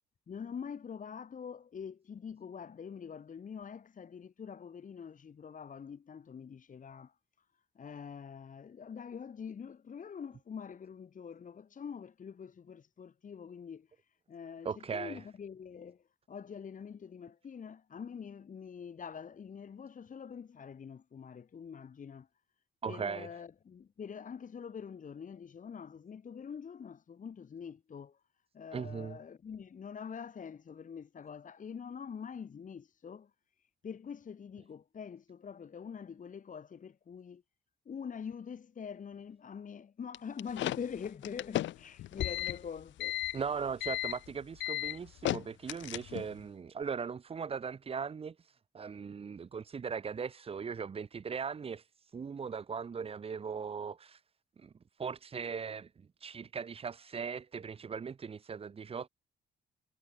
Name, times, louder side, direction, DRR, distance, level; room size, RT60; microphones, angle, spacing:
voice 1, 0.3-7.4 7.7-22.3 22.9-28.2 28.5-33.3 33.8-37.4 37.8-43.2, left 7 dB, 40° left, 1.4 m, -45 dB
voice 2, 14.6-15.2 22.8-23.3 28.7-29.2 43.3-54.2 54.6-54.7 55.0-55.9 56.2-59.1, right 6 dB, 30° right, 0.6 m, -39 dB
sound 1, 40.1-46.4, left 15 dB, 70° left, 0.5 m, -35 dB
cardioid pair, 90°, 20 cm